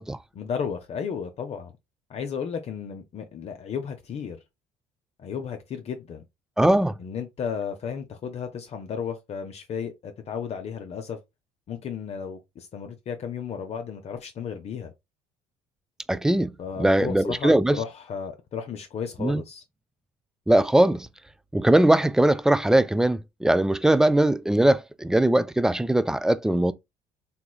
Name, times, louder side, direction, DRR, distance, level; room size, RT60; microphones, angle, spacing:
voice 1, 0.3-1.7 2.1-4.4 5.2-6.2 7.0-11.2 11.7-14.9 16.6-19.6, left 7 dB, 45° left, 0.6 m, -34 dB
voice 2, 6.6-6.9 16.1-16.5 16.8-17.8 19.2-19.4 20.5-21.1 21.5-26.7, right 1 dB, 5° right, 0.3 m, -20 dB
3.5 x 2.9 x 2.3 m
hypercardioid pair, 65°, 15 cm